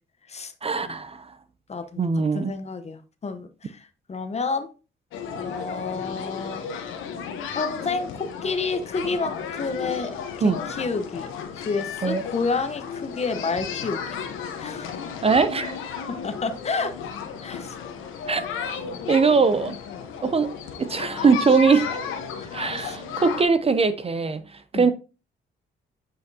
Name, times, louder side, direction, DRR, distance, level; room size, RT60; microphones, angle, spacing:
voice 1, 0.6-1.3 2.0-2.5 10.4-10.6 12.0-12.3 15.2-15.7 18.3-18.4 19.1-19.7 20.2-20.5 20.8-21.9 22.5-24.4 24.7-24.9, right 5 dB, 30° right, 0.5 m, -21 dB
voice 2, 1.7-2.0 2.3-4.7 5.3-6.6 7.5-10.1 10.4-11.3 11.6-14.0 14.6-15.0 16.1-17.0 17.4-17.8 22.4-23.0 24.7-24.9, left 4 dB, 35° left, 0.9 m, -30 dB
sound 1, 5.1-23.4, left 6 dB, 90° left, 1.1 m, -34 dB
8.2 x 5.1 x 2.8 m
cardioid pair, 90°, 20 cm